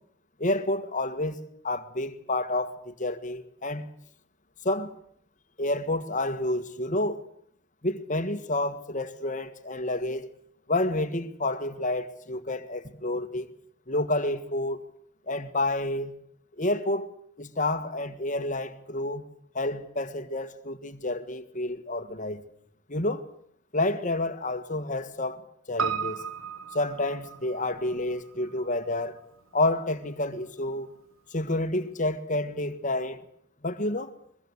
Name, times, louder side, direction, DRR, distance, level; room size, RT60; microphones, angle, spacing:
voice 1, 0.4-1.4 1.6-3.9 4.6-5.0 5.6-7.2 7.8-10.3 10.7-13.5 13.9-14.8 15.3-16.2 16.6-17.1 17.4-19.2 19.5-22.4 22.9-23.3 23.7-25.4 25.7-26.3 26.7-29.2 29.5-30.9 31.3-33.2 33.6-34.1, left 2 dB, 40° left, 1.7 m, -29 dB
Piano, 25.8-30.3 30.6-30.7, right 6 dB, 75° right, 1.7 m, -36 dB
23.0 x 23.0 x 8.1 m
head